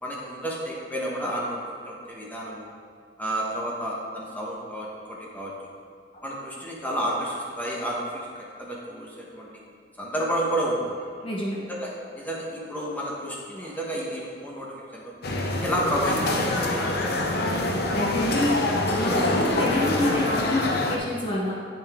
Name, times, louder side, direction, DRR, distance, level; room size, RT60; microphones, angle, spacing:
voice 1, 0.0-2.7 3.2-5.5 6.2-9.5 10.0-11.0 11.7-15.1 15.6-16.9 17.2-17.3, equal, 10° left, -4 dB, 1.0 m, -31 dB
voice 2, 11.2-11.6 13.6-13.7 17.9-18.5 19.0-21.5, left 1 dB, 30° left, -4 dB, 1.0 m, -27 dB
sound 1, 15.2-21.0, left 1 dB, 60° left, 0.8 m, -25 dB
8.6 x 6.3 x 3.6 m, 2.2 s
head